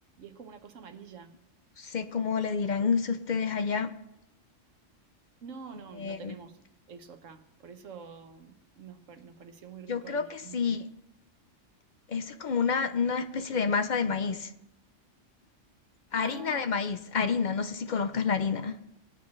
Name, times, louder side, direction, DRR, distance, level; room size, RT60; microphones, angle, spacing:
voice 1, 0.2-1.3 5.4-6.5 6.9-10.7 16.2-16.8, right 6 dB, 80° right, 1.3 m, -46 dB
voice 2, 1.8-4.0 6.0-6.4 9.9-10.9 12.1-14.5 16.1-18.8, left 5 dB, 50° left, 0.6 m, -29 dB
18.5 x 9.4 x 3.2 m
omnidirectional pair, 1.3 m